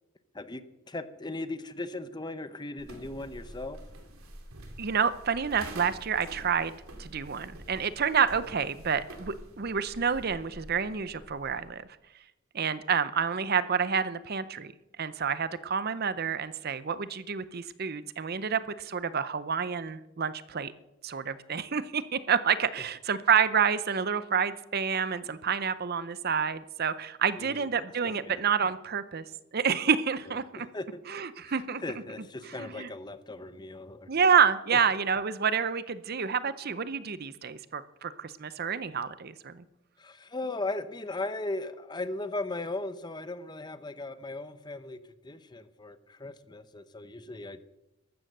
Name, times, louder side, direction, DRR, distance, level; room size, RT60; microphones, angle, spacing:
voice 1, 0.3-3.8 27.4-27.7 28.0-28.4 30.6-31.0 31.4-34.1 40.0-47.6, left 2 dB, 20° left, 12 dB, 0.7 m, -38 dB
sound 1, 2.8-11.7, right 1 dB, 80° right, 2.8 m, -47 dB
voice 2, 4.8-11.8 12.5-14.7 15.0-20.7 21.0-29.2 29.5-30.7 31.1-31.8 32.6-32.9 34.1-39.6, right 6 dB, 45° right, 15 dB, 0.6 m, -28 dB
14.0 x 12.5 x 6.6 m, 0.93 s
head